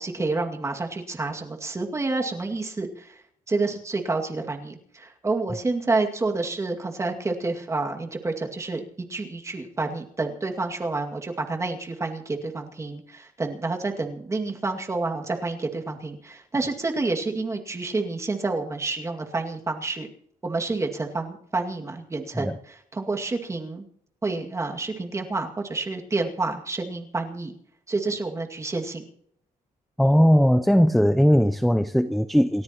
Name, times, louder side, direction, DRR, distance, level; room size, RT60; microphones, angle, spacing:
voice 1, 0.0-3.2 3.5-8.8 9.1-20.1 20.4-23.8 24.2-27.5 27.9-29.1, right 3 dB, 20° right, 2.2 m, -29 dB
voice 2, 30.0-32.6, equal, ahead, 0.5 m, -19 dB
29.0 x 13.0 x 3.0 m
cardioid pair, 145°, 14 cm